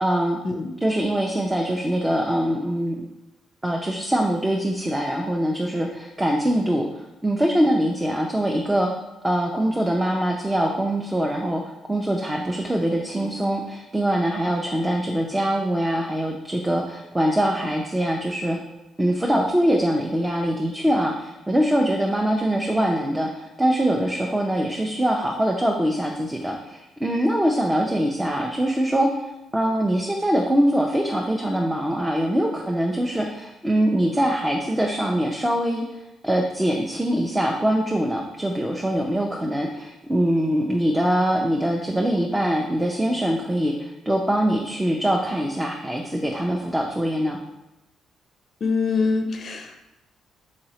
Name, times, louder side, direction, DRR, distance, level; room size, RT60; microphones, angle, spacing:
voice 1, 0.0-0.4 0.8-3.0 3.6-8.9 9.2-11.6 11.9-18.6 19.0-29.1 29.5-35.8 36.2-47.4, right 1 dB, 10° right, 0 dB, 0.4 m, -23 dB
voice 2, 48.6-49.8, left 4 dB, 50° left, 5 dB, 0.4 m, -24 dB
4.0 x 3.0 x 2.8 m, 0.98 s
cardioid pair, 90°, 0 cm